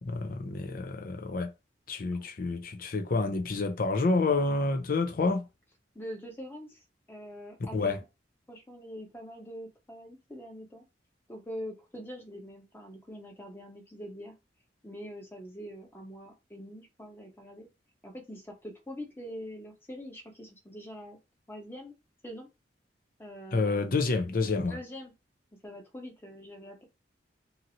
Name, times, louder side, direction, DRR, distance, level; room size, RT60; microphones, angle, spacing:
voice 1, 0.0-1.5 1.9-5.5 7.7-8.0 23.5-24.8, left 3 dB, 50° left, 0.5 m, -28 dB
voice 2, 5.9-8.0 8.5-10.8 11.3-14.3 14.8-17.7 18.0-21.2 21.5-21.9 22.2-22.5 23.2-24.0 24.3-24.4 24.7-25.1 25.6-26.8, equal, 10° left, 0.9 m, -44 dB
2.8 x 2.6 x 2.8 m
head